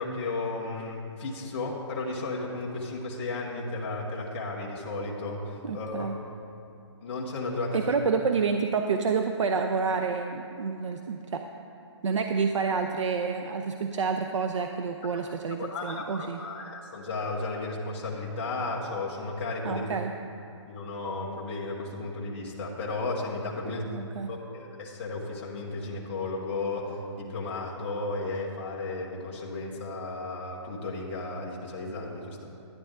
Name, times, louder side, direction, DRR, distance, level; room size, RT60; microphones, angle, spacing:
voice 1, 0.0-6.1 7.0-7.8 15.6-16.0 16.4-19.9 20.7-23.9 24.3-32.5, left 3 dB, 25° left, -4 dB, 1.1 m, -34 dB
voice 2, 5.6-6.2 7.7-11.4 12.0-16.4 19.6-20.1 23.9-24.3, right 5 dB, 85° right, 5 dB, 0.6 m, -28 dB
11.5 x 10.0 x 3.6 m, 2.7 s
hypercardioid pair, 175°, 15 cm